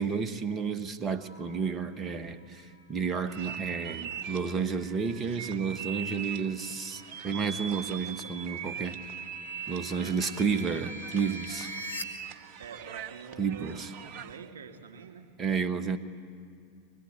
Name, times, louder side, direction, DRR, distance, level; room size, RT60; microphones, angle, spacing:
voice 1, 0.0-9.0 9.7-11.7 13.4-13.9 15.4-16.0, right 5 dB, 25° right, 10 dB, 1.2 m, -31 dB
sound 1, 1.1-12.0, left 3 dB, 80° left, 1.7 m, -48 dB
sound 2, 3.3-14.5, right 8 dB, 50° right, 0.7 m, -41 dB
voice 2, 9.6-10.4 12.6-15.3, right 6 dB, 65° right, 2 dB, 2.9 m, -47 dB
24.0 x 21.5 x 9.5 m, 2.4 s
figure-of-eight pair, 85°, 0 cm